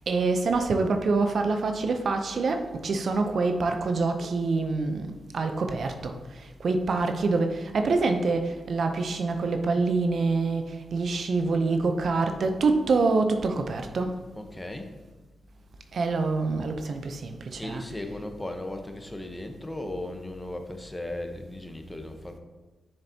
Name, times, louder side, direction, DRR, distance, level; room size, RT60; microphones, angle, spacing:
voice 1, 0.1-5.1 5.3-6.1 6.6-14.1 15.9-17.8, right 3 dB, 65° right, 6 dB, 0.6 m, -26 dB
voice 2, 14.3-14.9 17.6-22.4, left 1 dB, 15° left, 5 dB, 0.9 m, -36 dB
7.0 x 6.5 x 2.8 m, 1.3 s
cardioid pair, 60°, 0 cm